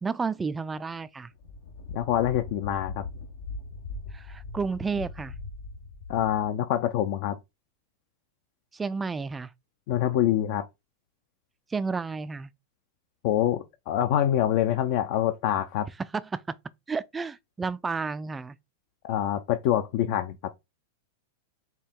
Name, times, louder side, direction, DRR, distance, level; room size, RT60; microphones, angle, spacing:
voice 1, 0.0-1.3 4.1-5.3 8.7-9.5 11.7-12.5 16.3-16.4 16.9-18.6, right 4 dB, 15° right, 0.3 m, -31 dB
Lighting Strike and Thunder, 0.8-0.9 1.3-6.5, left 3 dB, 80° left, 0.9 m, -40 dB
voice 2, 1.9-3.0 6.1-7.4 9.9-10.7 13.2-15.9 19.0-20.5, left 11 dB, 55° left, 0.5 m, -25 dB
4.5 x 2.7 x 3.6 m
hypercardioid pair, 115°, 0 cm